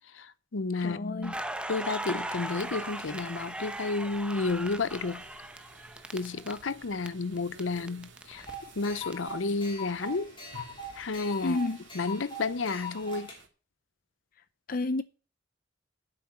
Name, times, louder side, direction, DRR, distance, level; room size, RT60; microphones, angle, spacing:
voice 1, 0.1-1.4 1.7-5.2 6.1-8.5 8.8-10.3 10.9-11.6 11.9-13.3, left 3 dB, 90° left, 0.7 m, -31 dB
voice 2, 0.8-1.3 11.4-11.8 14.7-15.0, left 2 dB, 50° left, 0.6 m, -30 dB
Crackle, 1.2-7.1 7.4-9.1, right 1 dB, 5° right, 0.8 m, -38 dB
sound 1, 2.3-13.5, right 4 dB, 75° right, 2.2 m, -54 dB
sound 2, 8.4-13.4, left 1 dB, 25° left, 3.3 m, -42 dB
8.7 x 7.8 x 8.3 m
head